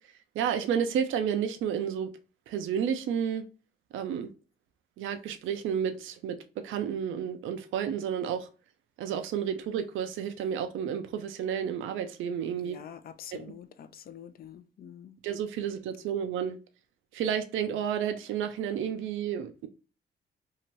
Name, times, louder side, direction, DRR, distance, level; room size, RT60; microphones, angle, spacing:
voice 1, 0.4-2.1 2.5-3.4 3.9-4.3 5.0-6.4 6.6-8.5 9.0-12.8 13.3-13.5 15.2-16.6 17.1-19.7, right 8 dB, 80° right, 0.5 m, -31 dB
voice 2, 12.6-15.1, left 9 dB, 50° left, 0.4 m, -46 dB
2.8 x 2.5 x 3.0 m
cardioid pair, 90°, 20 cm